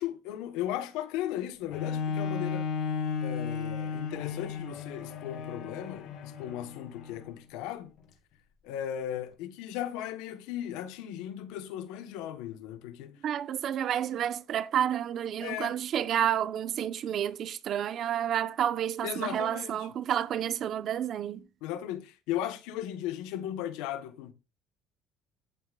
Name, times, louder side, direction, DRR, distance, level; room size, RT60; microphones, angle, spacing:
voice 1, 0.0-2.7 3.2-7.9 8.6-13.2 15.4-15.8 19.0-19.9 21.6-24.3, left 11 dB, 85° left, 1.3 m, -36 dB
Bowed string instrument, 1.7-7.3 8.0-8.1, left 6 dB, 60° left, 2.4 m, -34 dB
voice 2, 13.2-21.4, right 10 dB, 50° right, 1.1 m, -30 dB
15.0 x 8.5 x 2.5 m
cardioid pair, 115°, 0 cm